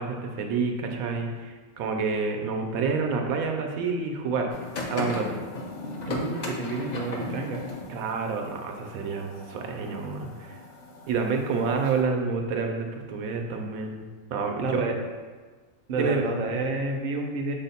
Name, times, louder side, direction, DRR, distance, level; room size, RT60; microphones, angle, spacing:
voice 1, 0.0-4.5 4.9-5.4 7.9-10.6 11.1-14.0 14.3-14.8 16.0-16.2, right 4 dB, 90° right, 3 dB, 1.0 m, -28 dB
sound 1, 4.5-12.0, left 2 dB, 75° left, 0.4 m, -37 dB
voice 2, 6.0-7.6 14.6-14.9 15.9-17.5, right 3 dB, 60° right, 1 dB, 0.4 m, -29 dB
5.8 x 2.1 x 4.0 m, 1.4 s
omnidirectional pair, 1.4 m